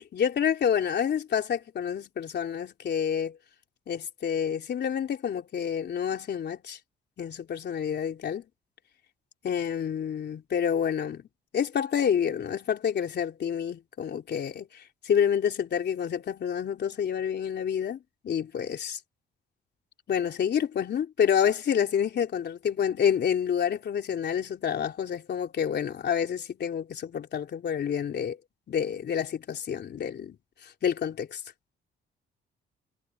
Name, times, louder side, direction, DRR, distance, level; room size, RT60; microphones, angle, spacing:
voice 1, 0.0-3.4 3.9-6.8 7.2-8.4 9.4-11.2 11.5-14.7 15.0-19.0 20.1-28.4 28.7-30.4 30.8-31.4, left 8 dB, 60° left, 3.5 m, -28 dB
cardioid pair, 90°, 20 cm